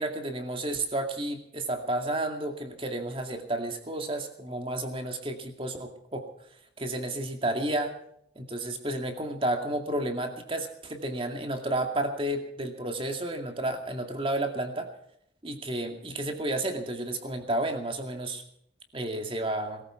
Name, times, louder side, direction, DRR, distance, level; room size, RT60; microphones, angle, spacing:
voice 1, 0.0-6.3 6.8-7.9 8.4-14.9 15.4-18.4 18.9-19.8, right 1 dB, 30° right, 4 dB, 2.3 m, -31 dB
21.5 x 14.5 x 4.5 m, 0.73 s
head